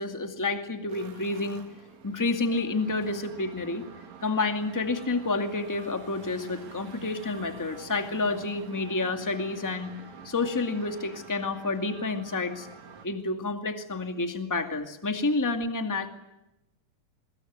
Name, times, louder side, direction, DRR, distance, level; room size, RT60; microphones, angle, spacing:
voice 1, 0.0-1.7 2.0-3.8 4.2-9.9 10.2-12.7 13.0-16.1, left 3 dB, 10° left, 6 dB, 1.4 m, -29 dB
sound 1, 0.9-13.1, right 6 dB, 55° right, 3.5 m, -48 dB
24.5 x 21.5 x 9.4 m, 0.88 s
omnidirectional pair, 4.1 m